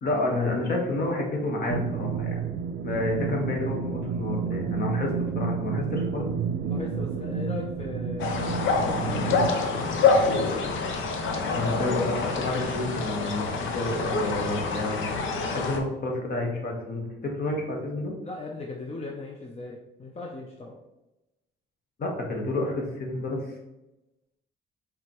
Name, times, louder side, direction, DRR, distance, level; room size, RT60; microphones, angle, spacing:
voice 1, 0.0-2.4 2.8-6.3 11.5-15.0 15.5-18.1 22.0-23.4, left 2 dB, 50° left, 0 dB, 1.3 m, -29 dB
sound 1, 1.7-9.5, right 6 dB, 70° right, 0.4 m, -30 dB
voice 2, 6.6-8.3 8.9-10.3 18.2-20.7, left 2 dB, 30° left, 0 dB, 0.6 m, -37 dB
sound 2, 8.2-15.8, left 4 dB, 75° left, 0.7 m, -26 dB
4.8 x 3.5 x 3.0 m, 0.98 s
cardioid pair, 90°, 20 cm